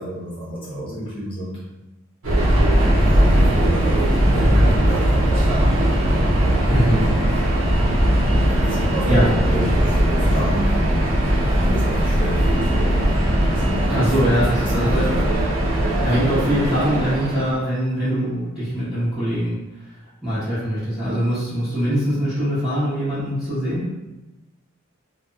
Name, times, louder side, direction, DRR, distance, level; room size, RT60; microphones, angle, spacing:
voice 1, 0.0-1.6 2.9-6.7 8.4-13.1 13.4-15.6, equal, 25° left, -8 dB, 1.0 m, -31 dB
Subway metro underground, 2.2-17.6, equal, 80° right, 0.7 m, -19 dB
voice 2, 6.7-7.1 9.1-9.3 13.9-15.1 16.0-19.5 19.8-19.9 20.2-23.8, equal, ahead, -17 dB, 1.1 m, -22 dB
2.8 x 2.1 x 2.3 m, 0.98 s
head